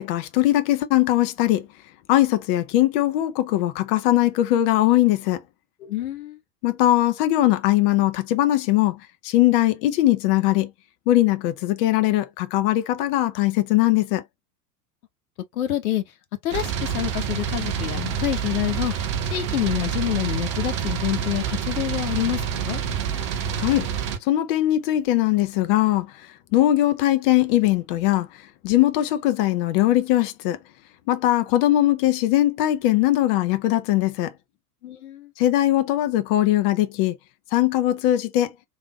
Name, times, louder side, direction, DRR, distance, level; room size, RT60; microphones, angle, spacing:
voice 1, 0.0-1.7 2.1-5.4 6.6-10.7 11.1-14.2 23.6-23.9 24.2-26.1 26.5-28.3 28.6-30.6 31.1-34.3 35.4-37.2 37.5-38.5, left 14 dB, 35° left, 0.5 m, -20 dB
voice 2, 5.8-6.4 15.5-16.0 16.4-18.9 19.3-22.8 34.8-35.3, left 13 dB, 60° left, 0.9 m, -27 dB
sound 1, 16.5-24.2, right 8 dB, 20° right, 0.3 m, -27 dB
3.4 x 2.7 x 2.9 m
figure-of-eight pair, 85°, 49 cm